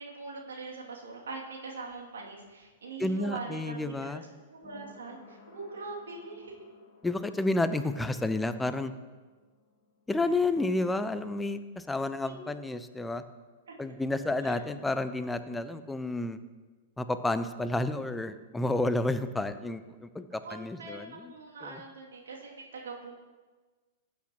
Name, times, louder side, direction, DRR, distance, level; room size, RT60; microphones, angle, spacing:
voice 1, 0.0-4.1 4.5-6.5 12.2-12.4 13.7-13.8 14.4-14.6 20.4-23.1, right 3 dB, 70° right, -2 dB, 2.5 m, -42 dB
sound 1, 1.6-13.1 13.3-13.4, left 4 dB, 35° left, 3.4 m, -59 dB
voice 2, 3.0-4.2 7.0-8.9 10.1-13.2 13.8-16.4 17.0-21.3 21.6-21.8, left 2 dB, 10° left, 11 dB, 0.6 m, -30 dB
18.5 x 8.5 x 3.0 m, 1.3 s
figure-of-eight pair, 100°, 0 cm